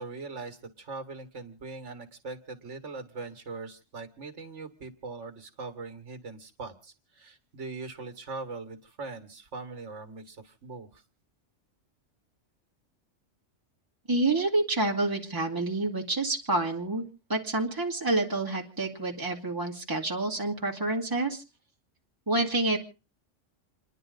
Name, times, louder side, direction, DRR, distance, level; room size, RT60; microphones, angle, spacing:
voice 1, 0.0-11.0, right 3 dB, 65° right, 7 dB, 2.1 m, -41 dB
voice 2, 14.1-17.0 17.3-21.4 22.3-22.8, right 2 dB, 15° right, -1 dB, 2.3 m, -28 dB
29.0 x 10.5 x 3.9 m, 0.35 s
omnidirectional pair, 1.3 m